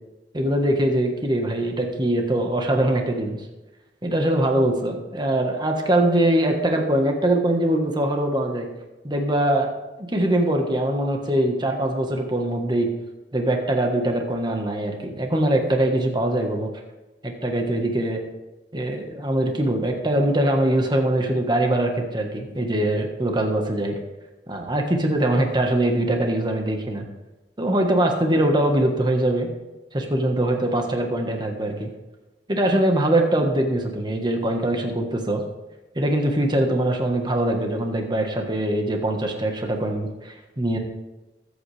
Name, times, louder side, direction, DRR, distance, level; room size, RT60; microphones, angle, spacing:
voice 1, 0.3-3.4 4.0-8.7 9.0-9.7 10.0-12.9 13.3-16.7 17.2-18.2 18.7-24.0 24.5-27.0 27.6-29.5 29.9-31.9 32.5-35.4 35.9-40.8, right 1 dB, 25° right, 3 dB, 1.5 m, -22 dB
21.5 x 8.4 x 3.5 m, 1.1 s
head